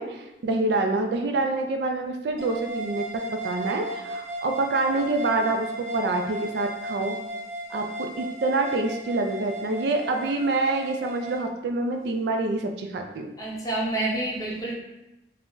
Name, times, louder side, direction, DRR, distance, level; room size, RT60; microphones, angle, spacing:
voice 1, 0.0-7.2 7.7-13.3, right 2 dB, 70° right, 4 dB, 0.3 m, -26 dB
sound 1, 2.4-11.4, right 2 dB, 45° right, 0.7 m, -36 dB
voice 2, 13.4-14.7, right 2 dB, 20° left, -5 dB, 0.6 m, -28 dB
2.4 x 2.1 x 3.6 m, 0.92 s
head